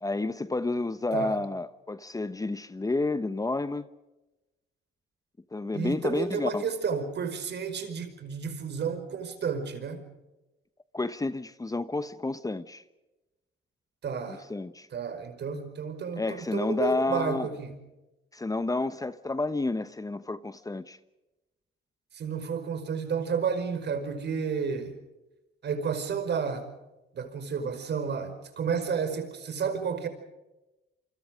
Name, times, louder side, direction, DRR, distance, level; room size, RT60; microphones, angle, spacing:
voice 1, 0.0-3.9 5.5-6.7 10.9-12.8 14.5-14.9 16.2-17.5 18.3-21.0, left 2 dB, 15° left, 1.0 m, -30 dB
voice 2, 5.7-10.0 14.0-14.4 14.9-17.7 22.1-25.0 25.6-26.6 27.1-30.1, right 6 dB, 60° right, 5.1 m, -31 dB
27.5 x 25.0 x 5.1 m
cardioid pair, 90°, 20 cm